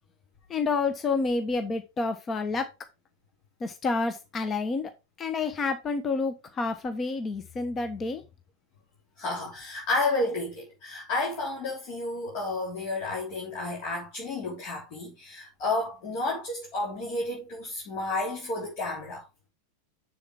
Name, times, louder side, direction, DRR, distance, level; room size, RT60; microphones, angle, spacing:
voice 1, 0.5-2.7 3.6-4.9 5.2-8.2, left 4 dB, 25° left, 1.1 m, -29 dB
voice 2, 9.2-19.3, left 2 dB, 45° left, 3.4 m, -31 dB
7.3 x 7.0 x 3.6 m
figure-of-eight pair, 90°, 0 cm